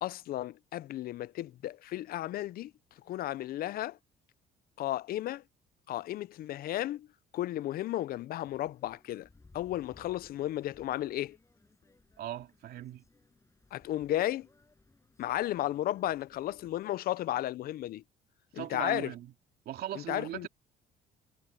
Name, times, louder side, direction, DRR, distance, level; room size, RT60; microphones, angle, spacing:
voice 1, 0.0-2.7 3.1-4.0 4.8-5.4 5.9-7.1 7.3-9.3 9.5-11.4 13.7-14.5 15.2-18.0 18.5-19.1 19.9-20.5, left 14 dB, 60° left, 0.5 m, -34 dB
sound 1, 8.4-16.8, left 3 dB, 15° left, 7.6 m, -63 dB
voice 2, 12.2-13.0 18.6-19.3 19.7-20.5, right 12 dB, 70° right, 2.6 m, -39 dB
cardioid pair, 110°, 17 cm